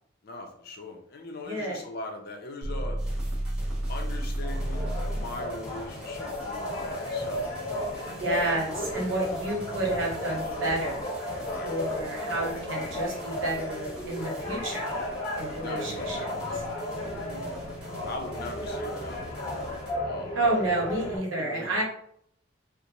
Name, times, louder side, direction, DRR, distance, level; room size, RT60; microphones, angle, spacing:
voice 1, 0.2-3.0 3.9-7.5 8.0-8.9 9.2-9.3 11.4-11.7 15.6-17.6 18.0-20.4 21.4-21.8, left 2 dB, 50° left, 3 dB, 0.5 m, -41 dB
voice 2, 1.4-1.8 8.0-11.1 11.6-14.9 15.3-16.3 17.2-17.6 20.3-21.8, right 2 dB, 75° right, -2 dB, 0.9 m, -30 dB
sound 1, 2.6-5.4, right 1 dB, 50° right, 0.4 m, -30 dB
sound 2, 3.0-19.9, equal, 5° right, 0.7 m, -46 dB
sound 3, 4.4-21.2, left 1 dB, 30° left, 0.8 m, -34 dB
2.5 x 2.1 x 2.9 m, 0.68 s
head